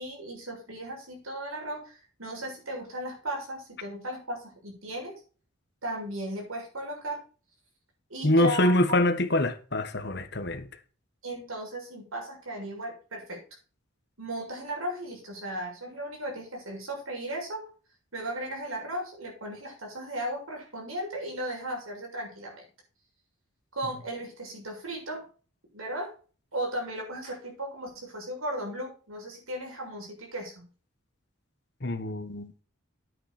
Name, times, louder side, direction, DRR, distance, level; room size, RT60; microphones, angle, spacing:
voice 1, 0.0-5.2 5.8-7.2 8.1-9.0 11.2-13.4 14.2-17.6 18.1-22.7 23.7-25.2 25.7-26.1 26.5-30.6, right 1 dB, 80° right, 7.0 m, -36 dB
voice 2, 8.2-10.7 31.8-32.5, left 1 dB, 50° left, 1.4 m, -25 dB
10.5 x 8.7 x 4.3 m
head